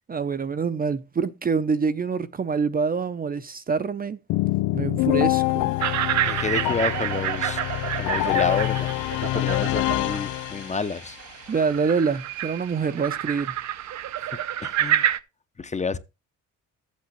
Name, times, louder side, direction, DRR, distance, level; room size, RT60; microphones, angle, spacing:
voice 1, 0.1-4.2 4.7-5.7 11.5-13.5, right 5 dB, 30° right, 0.6 m, -26 dB
sound 1, 4.3-11.1, left 19 dB, 85° left, 0.5 m, -25 dB
sound 2, 5.8-15.2, right 11 dB, 65° right, 0.8 m, -29 dB
voice 2, 6.2-7.6 8.0-8.9 9.3-11.2 14.2-15.1 15.6-16.0, left 4 dB, 25° left, 0.8 m, -29 dB
13.0 x 8.4 x 3.1 m
cardioid pair, 90°, 30 cm